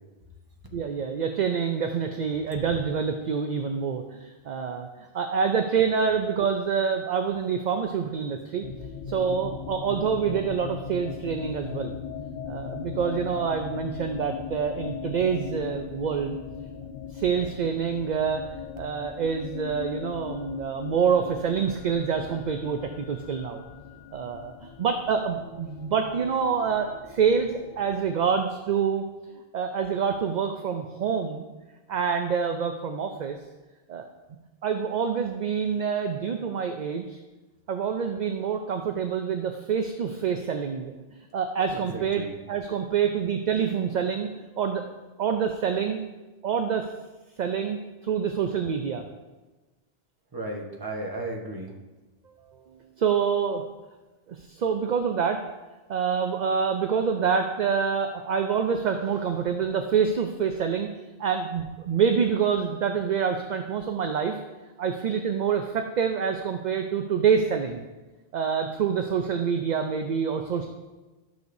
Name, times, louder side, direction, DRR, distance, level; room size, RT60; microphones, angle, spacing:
voice 1, 0.7-4.9 5.1-8.6 9.1-11.9 12.5-16.4 17.1-23.6 24.1-29.0 29.5-31.4 31.9-33.4 33.9-34.1 34.6-37.2 37.7-44.3 44.6-44.8 45.2-46.0 46.4-46.9 47.4-49.0 52.3-53.6 54.3-55.4 55.9-60.9 61.2-64.4 64.8-67.8 68.3-70.7, right 6 dB, 55° right, 5 dB, 0.6 m, -26 dB
sound 1, 8.6-28.5, left 7 dB, 55° left, 0.7 m, -39 dB
voice 2, 41.7-42.3 50.3-51.8, right 2 dB, 20° right, 0 dB, 1.1 m, -35 dB
12.5 x 6.5 x 2.7 m, 1.2 s
omnidirectional pair, 1.1 m